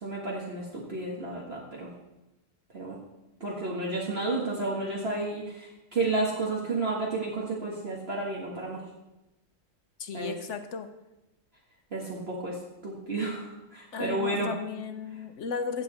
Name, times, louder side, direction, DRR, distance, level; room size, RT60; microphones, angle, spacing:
voice 1, 0.0-1.9 2.7-3.0 3.4-8.8 10.1-10.4 11.9-12.6 12.8-14.5, right 2 dB, 45° right, -4 dB, 1.9 m, -31 dB
voice 2, 10.0-10.9 13.9-15.8, left 5 dB, 60° left, 9 dB, 1.1 m, -35 dB
15.5 x 7.5 x 4.3 m, 0.98 s
omnidirectional pair, 1.5 m